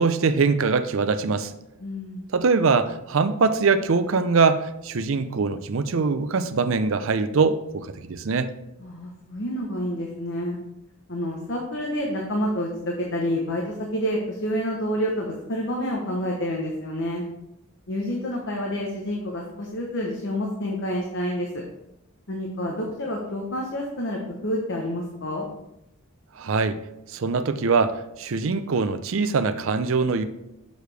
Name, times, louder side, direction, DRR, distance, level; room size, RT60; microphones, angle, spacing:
voice 1, 0.0-1.5 2.3-8.5 26.4-26.8 27.1-30.2, right 4 dB, 70° right, 11 dB, 0.5 m, -23 dB
voice 2, 1.8-2.3 8.8-10.6 11.1-13.6 13.9-17.2 17.9-21.6 22.3-25.5, equal, 60° left, -1 dB, 1.0 m, -28 dB
6.6 x 6.5 x 3.4 m, 0.88 s
head